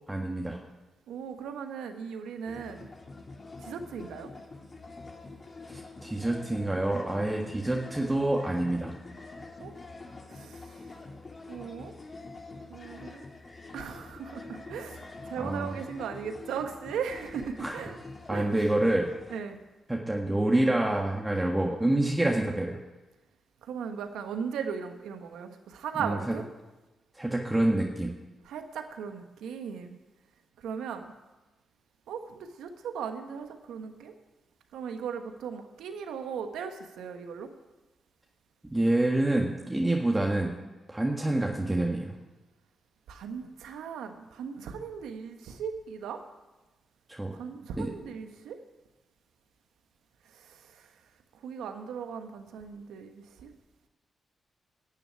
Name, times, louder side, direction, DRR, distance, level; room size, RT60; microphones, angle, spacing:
voice 1, 0.1-0.6 5.7-8.9 15.4-15.7 17.6-17.8 18.3-19.1 19.9-22.8 26.0-26.3 27.1-28.1 38.7-40.5 40.9-42.1 47.1-47.3 47.8-47.9, right 1 dB, 15° right, -1 dB, 1.7 m, -27 dB
voice 2, 1.1-2.9 3.6-4.3 9.6-9.7 10.3-10.8 11.5-11.9 12.7-13.2 13.7-18.0 18.3-18.6 19.3-19.6 23.6-26.4 28.5-30.0 30.6-31.1 32.1-34.1 34.7-37.5 43.1-46.2 47.3-48.6 50.2-50.9 51.4-53.5, right 7 dB, 85° right, 7 dB, 1.1 m, -38 dB
sound 1, 2.5-19.4, left 3 dB, 45° left, 2.1 m, -46 dB
11.5 x 6.9 x 9.8 m, 1.1 s
supercardioid pair, 45°, 0 cm